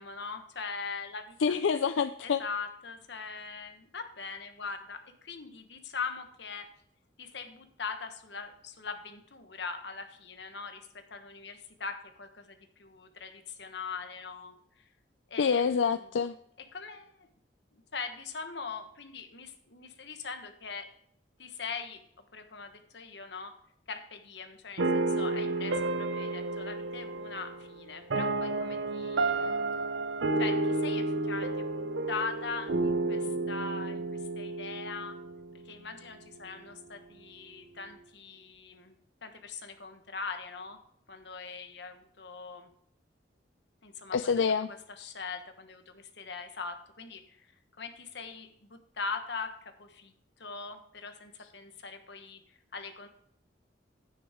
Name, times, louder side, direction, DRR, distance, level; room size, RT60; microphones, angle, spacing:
voice 1, 0.0-1.5 2.2-6.7 7.2-14.8 15.3-15.6 16.7-17.3 17.7-20.9 21.4-22.0 22.3-23.5 23.9-29.5 30.4-35.2 35.6-38.9 39.2-40.8 41.1-42.7 43.8-44.3 45.0-47.5 47.8-50.1 50.4-52.4 52.7-53.1, left 5 dB, 65° left, 7 dB, 1.3 m, -41 dB
voice 2, 1.4-2.4 15.4-16.4 44.1-44.7, left 6 dB, 85° left, 11 dB, 0.4 m, -27 dB
sound 1, 24.8-35.9, right 2 dB, 75° right, 0.7 m, -31 dB
10.0 x 9.4 x 3.7 m, 0.69 s
head